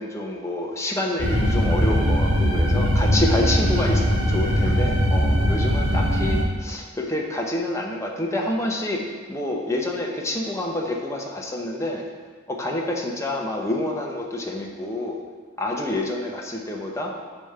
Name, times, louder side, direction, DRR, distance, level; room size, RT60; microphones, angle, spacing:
voice 1, 0.0-12.0 12.5-15.2 15.6-17.1, left 1 dB, 15° left, 0 dB, 0.7 m, -28 dB
sound 1, 1.2-6.4, equal, 70° right, 1.4 m, -20 dB
8.2 x 3.4 x 6.6 m, 1.5 s
head